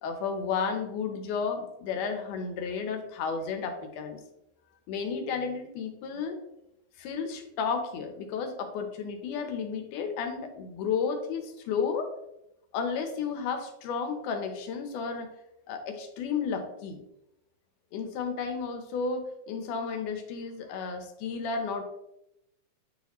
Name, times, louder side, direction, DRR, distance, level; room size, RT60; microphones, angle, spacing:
voice 1, 0.0-4.2 4.9-6.4 7.0-12.1 12.7-15.3 15.7-17.0 17.9-21.8, left 5 dB, 80° left, 6 dB, 2.4 m, -32 dB
9.0 x 4.1 x 3.0 m, 0.83 s
omnidirectional pair, 3.6 m